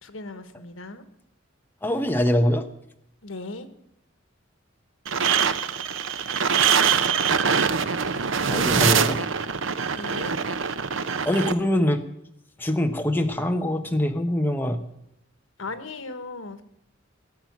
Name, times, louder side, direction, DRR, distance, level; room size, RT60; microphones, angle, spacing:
voice 1, 0.0-1.0 3.2-3.7 9.9-10.3 15.6-16.6, left 3 dB, 85° left, 10 dB, 1.5 m, -37 dB
voice 2, 1.8-2.7 8.5-9.2 11.2-12.0 12.6-14.8, left 1 dB, 10° left, 5 dB, 1.1 m, -23 dB
sound 1, 5.1-11.5, right 6 dB, 75° right, 0.8 m, -23 dB
18.0 x 7.7 x 9.4 m, 0.79 s
head